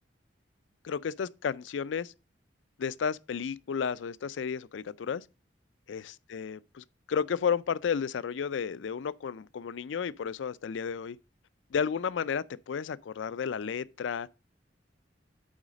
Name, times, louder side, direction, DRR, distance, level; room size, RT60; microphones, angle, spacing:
voice 1, 0.8-2.1 2.8-5.2 5.9-11.2 11.7-14.3, left 6 dB, 75° left, 0.4 m, -32 dB
8.7 x 4.1 x 5.0 m
head